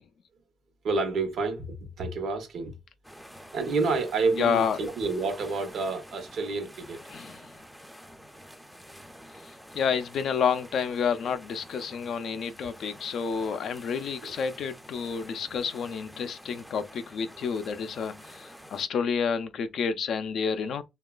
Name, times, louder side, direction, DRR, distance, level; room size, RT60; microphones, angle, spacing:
voice 1, 0.8-2.7 3.5-7.0 14.2-14.3, right 4 dB, 70° right, 0.8 m, -29 dB
sound 1, 3.0-18.9, equal, ahead, 0.4 m, -48 dB
voice 2, 4.4-4.8 7.1-7.4 9.7-20.8, left 6 dB, 65° left, 0.3 m, -29 dB
3.0 x 2.2 x 2.2 m
cardioid pair, 90°, 0 cm